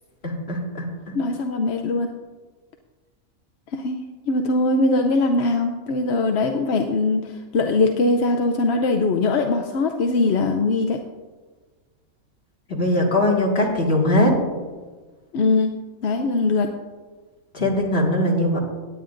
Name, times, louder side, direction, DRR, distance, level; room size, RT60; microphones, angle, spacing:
voice 1, 0.2-0.9 12.7-14.3 17.5-18.6, left 1 dB, 40° left, -2 dB, 2.2 m, -20 dB
voice 2, 1.1-2.1 3.7-4.0 4.3-11.0 15.3-15.7 16.0-16.7, left 3 dB, 55° left, 4 dB, 0.8 m, -21 dB
18.0 x 9.4 x 2.5 m, 1.3 s
omnidirectional pair, 1.5 m